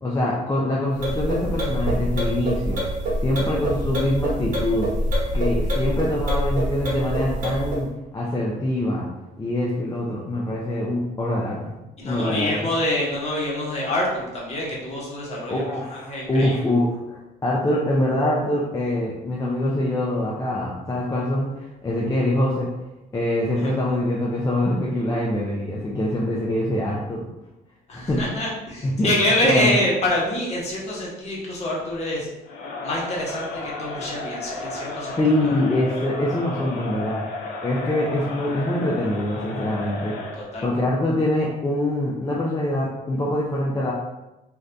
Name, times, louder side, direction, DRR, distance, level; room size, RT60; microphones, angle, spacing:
voice 1, 0.0-2.8 3.2-4.9 5.3-9.0 9.4-11.8 12.0-12.5 15.5-22.7 23.1-27.3 27.9-28.2 28.8-29.1 29.4-29.7 35.2-37.2 37.6-40.1 40.6-43.9, left 1 dB, 20° left, -5 dB, 0.5 m, -24 dB
sound 1, 0.9-7.8, equal, 50° right, 1.2 m, -25 dB
voice 2, 12.0-15.6 15.9-16.5 23.6-23.7 27.9-32.3 32.8-35.2 35.4-35.5 40.5-40.7, left 1 dB, 40° left, -5 dB, 1.1 m, -25 dB
Crowd, 32.4-40.5, left 2 dB, 70° left, 0.7 m, -33 dB
2.6 x 2.5 x 3.4 m, 0.96 s
cardioid pair, 110°, 17 cm